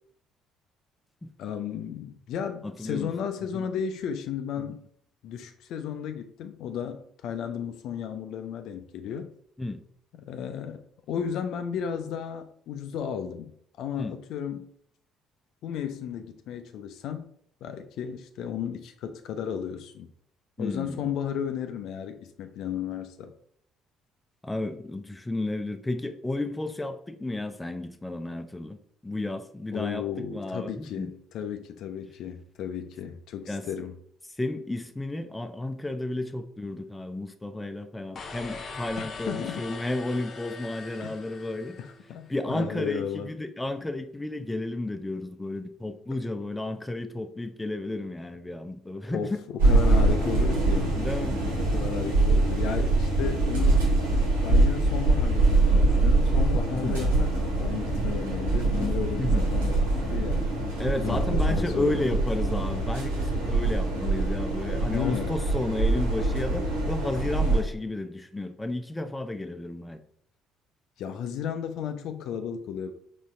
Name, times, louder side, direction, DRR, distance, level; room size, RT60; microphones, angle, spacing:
voice 1, 1.4-4.8 5.2-9.3 10.1-14.7 15.6-17.3 17.6-20.1 20.6-23.3 29.7-34.0 39.0-39.7 41.0-41.2 41.8-43.3 49.1-51.0 51.6-53.9 54.4-60.4 61.0-62.0 64.9-65.4 71.0-72.9, left 8 dB, 65° left, 0.4 m, -34 dB
voice 2, 2.6-3.1 3.5-3.7 4.7-4.8 9.6-9.8 13.9-14.1 20.6-21.1 24.4-28.8 29.0-31.1 33.5-33.7 34.4-41.7 42.3-49.4 50.9-51.4 56.7-57.1 59.2-59.5 60.8-70.0, left 2 dB, 15° left, 0.5 m, -32 dB
sound 1, 38.1-42.3, left 4 dB, 45° left, 0.8 m, -41 dB
sound 2, 49.6-67.6, right 2 dB, 85° right, 1.2 m, -24 dB
4.1 x 3.2 x 3.7 m
hypercardioid pair, 55°, 0 cm